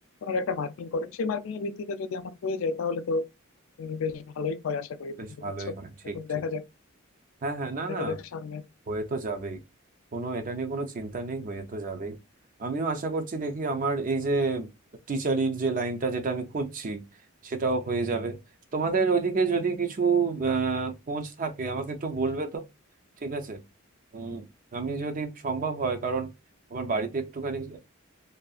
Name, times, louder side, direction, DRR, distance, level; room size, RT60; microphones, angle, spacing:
voice 1, 0.2-3.3 3.8-5.7 6.1-6.6 7.9-8.6, left 4 dB, 65° left, 0.3 m, -31 dB
voice 2, 5.2-6.2 7.4-8.2 8.9-9.6 10.1-12.2 12.6-14.7 15.1-17.1 17.4-18.4 18.7-22.6 23.2-23.6 24.1-26.3 26.7-27.8, right 4 dB, 40° right, 0.5 m, -29 dB
2.6 x 2.3 x 2.3 m
head